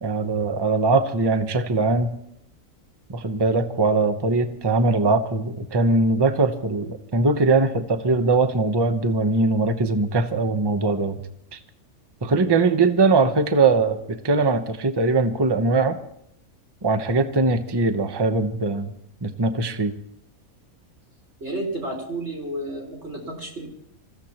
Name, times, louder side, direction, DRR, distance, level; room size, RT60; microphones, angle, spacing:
voice 1, 0.0-2.1 3.1-11.2 11.5-11.6 12.2-16.0 16.8-18.9 19.2-19.9, right 3 dB, 20° right, 8 dB, 0.8 m, -21 dB
voice 2, 21.4-23.7, right 1 dB, 50° right, -1 dB, 4.7 m, -31 dB
26.5 x 15.5 x 3.0 m, 0.72 s
omnidirectional pair, 1.4 m